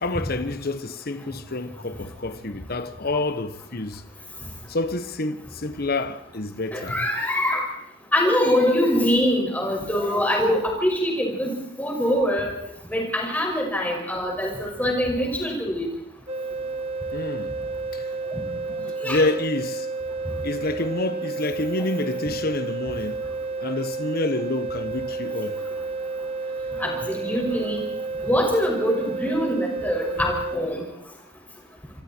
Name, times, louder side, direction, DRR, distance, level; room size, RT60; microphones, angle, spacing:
voice 1, 0.0-4.0 4.7-7.1 17.1-17.5 17.9-18.1 18.7-19.9 20.4-23.2 23.6-25.6, left 2 dB, 50° left, 1.1 m, -28 dB
voice 2, 6.7-7.6 8.1-11.5 11.8-12.5 12.9-15.9 18.3-18.4 19.0-19.2 26.8-27.8 28.2-30.8, equal, 10° left, 5.9 m, -23 dB
sound 1, 16.3-30.6, right 3 dB, 35° right, 1.2 m, -31 dB
27.0 x 24.0 x 4.5 m
head